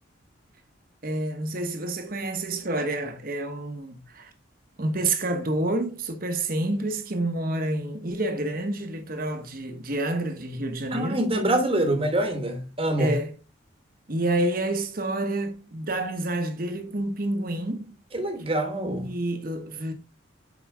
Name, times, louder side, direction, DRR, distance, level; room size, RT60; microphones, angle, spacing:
voice 1, 1.0-4.3 4.8-11.3 13.0-13.4 14.1-17.9 19.0-19.9, right 2 dB, 45° right, 1.1 m, -28 dB
voice 2, 10.9-13.2 18.1-19.1, right 1 dB, 30° right, 1.2 m, -25 dB
7.3 x 4.9 x 3.4 m
head